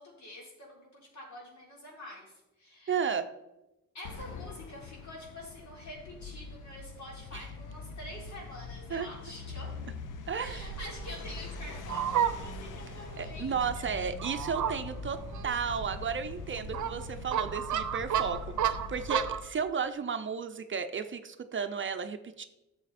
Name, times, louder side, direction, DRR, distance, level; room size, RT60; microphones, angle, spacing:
voice 1, 0.0-2.9 3.9-9.7 10.4-14.0 19.1-19.2, left 1 dB, 65° left, -3 dB, 3.9 m, -47 dB
voice 2, 2.9-3.3 7.3-7.4 8.9-9.1 10.3-10.6 13.2-15.2 15.4-22.4, right 6 dB, 40° right, 8 dB, 0.6 m, -33 dB
sound 1, 4.0-19.5, left 5 dB, 85° left, 0.9 m, -43 dB
Fowl, 10.4-19.5, right 9 dB, 70° right, 0.7 m, -34 dB
11.0 x 7.1 x 4.2 m, 0.97 s
cardioid pair, 105°, 30 cm